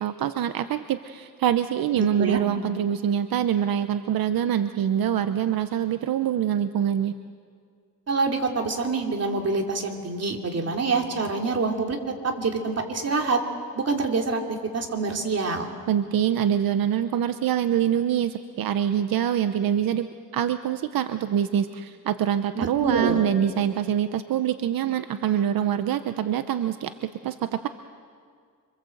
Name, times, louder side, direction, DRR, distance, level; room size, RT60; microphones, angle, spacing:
voice 1, 0.0-7.1 15.9-20.1 20.3-27.7, right 9 dB, 85° right, 10 dB, 0.8 m, -25 dB
voice 2, 1.9-2.4 8.1-13.4 13.7-15.7 22.5-23.2, right 4 dB, 45° right, 2 dB, 3.0 m, -26 dB
26.5 x 25.0 x 7.9 m, 2.1 s
cardioid pair, 120°, 34 cm